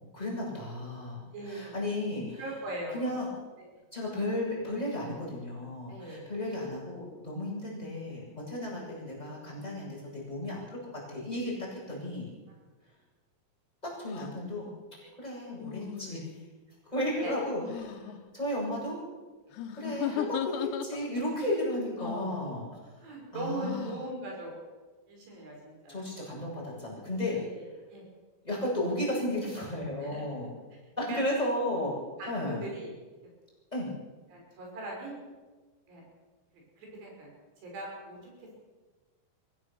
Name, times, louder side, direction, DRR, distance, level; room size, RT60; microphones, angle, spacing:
voice 1, 0.1-2.4 2.9-3.3 3.9-12.3 13.8-14.7 15.2-16.2 16.9-19.0 19.7-22.6 23.3-23.9 25.9-27.4 28.4-30.5 31.0-31.9 32.3-32.6 33.7-33.9, left 1 dB, 10° left, -4 dB, 7.2 m, -34 dB
voice 2, 1.3-1.8 2.4-3.1 3.6-3.7 5.9-6.3 8.6-8.7 17.2-17.3 19.4-19.5 22.0-24.5 25.1-26.0 27.3-28.1 30.0-30.2 31.1-31.2 32.2-32.9 34.3-35.1 35.9-36.0 36.8-37.3 37.6-38.6, right 2 dB, 80° right, -1 dB, 7.7 m, -40 dB
sound 1, 14.1-14.3 15.6-16.5 17.6-18.2 19.5-21.3 22.0-22.4 23.6-24.1, left 10 dB, 90° left, 3.4 m, -37 dB
23.5 x 15.5 x 7.1 m, 1.3 s
omnidirectional pair, 4.8 m